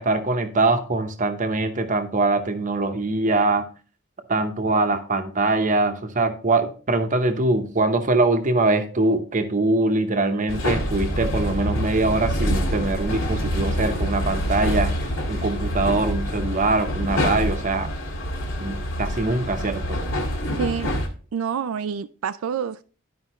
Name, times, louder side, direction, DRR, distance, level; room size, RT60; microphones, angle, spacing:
voice 1, 0.0-3.6 4.3-17.9 18.6-20.0, right 2 dB, 40° right, 0.9 m, -23 dB
sound 1, 10.5-21.1, equal, 70° left, 1.8 m, -26 dB
voice 2, 20.6-20.9 21.3-22.8, right 7 dB, 90° right, 0.4 m, -27 dB
11.5 x 5.1 x 3.0 m
head